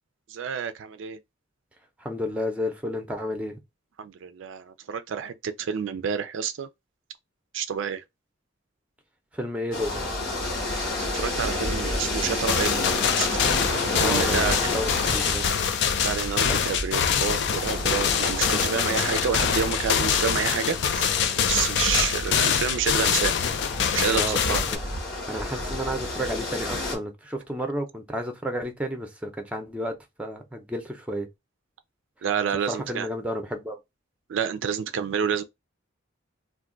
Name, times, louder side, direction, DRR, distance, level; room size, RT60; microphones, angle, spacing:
voice 1, 0.3-1.2 4.0-6.7 7.5-8.0 11.0-13.3 13.9-14.8 16.0-21.1 21.5-23.3 23.9-24.6 32.2-33.1 34.3-35.4, right 7 dB, 70° right, 0.4 m, -29 dB
voice 2, 2.0-3.6 9.4-10.0 13.9-14.4 14.7-15.4 16.5-16.6 24.1-24.6 25.3-31.3 32.7-33.8, equal, 5° right, 0.6 m, -31 dB
sound 1, 9.7-26.9, left 1 dB, 80° left, 1.1 m, -31 dB
sound 2, 12.5-24.8, left 8 dB, 60° left, 0.4 m, -25 dB
2.5 x 2.3 x 3.7 m
head